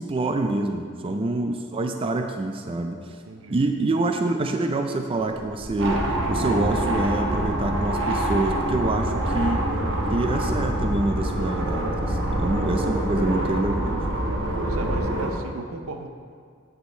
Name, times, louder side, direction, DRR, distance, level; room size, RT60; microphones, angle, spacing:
voice 1, 0.0-3.0 3.5-9.7 10.1-14.0, right 2 dB, 25° right, 5 dB, 0.4 m, -26 dB
voice 2, 1.0-1.3 3.3-3.6 14.6-16.1, right 2 dB, 85° right, 5 dB, 0.7 m, -36 dB
sound 1, 5.2-15.0, equal, 5° left, 1.1 m, -36 dB
sound 2, 5.8-15.3, right 1 dB, 65° right, 1.1 m, -26 dB
8.3 x 5.5 x 4.3 m, 2.1 s
head